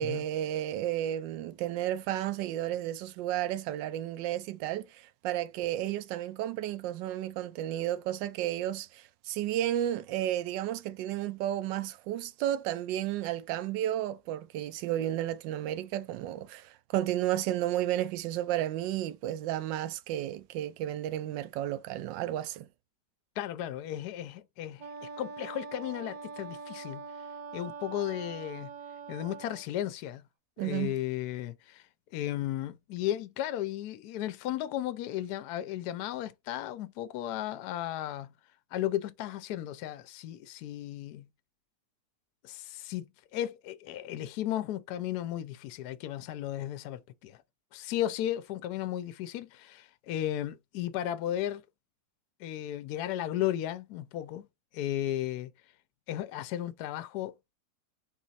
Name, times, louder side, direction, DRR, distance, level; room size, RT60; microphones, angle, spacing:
voice 1, 0.0-22.7 30.6-30.9, right 12 dB, 90° right, 1.3 m, -32 dB
voice 2, 23.4-27.1 27.5-28.7 29.1-30.3 30.6-38.3 38.7-41.3 42.4-47.4 47.7-51.6 52.4-54.5 54.7-55.5 56.1-57.3, left 12 dB, 70° left, 1.1 m, -35 dB
Wind instrument woodwind instrument, 24.8-29.7, right 5 dB, 55° right, 0.5 m, -43 dB
4.0 x 3.0 x 4.1 m
omnidirectional pair, 1.9 m